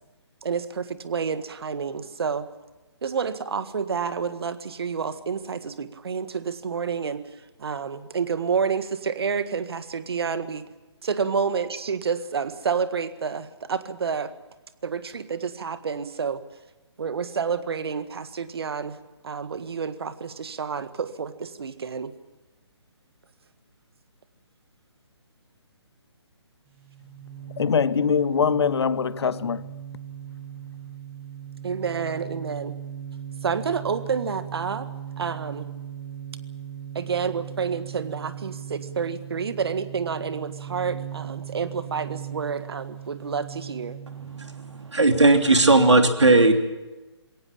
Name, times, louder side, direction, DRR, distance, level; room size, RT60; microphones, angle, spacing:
voice 1, 0.4-2.5 3.0-7.2 7.6-10.6 11.0-14.3 14.8-16.4 17.0-19.0 19.2-22.1 31.6-32.7 33.4-34.9 35.2-35.7 36.9-44.0, right 6 dB, 60° right, 1.7 m, -29 dB
sound 1, 26.7-44.9, right 9 dB, 20° right, 7.8 m, -38 dB
voice 2, 27.6-29.8, left 6 dB, 65° left, 0.6 m, -23 dB
voice 3, 44.3-46.5, right 2 dB, 85° right, 3.1 m, -17 dB
22.0 x 18.0 x 8.7 m
figure-of-eight pair, 140°, 15 cm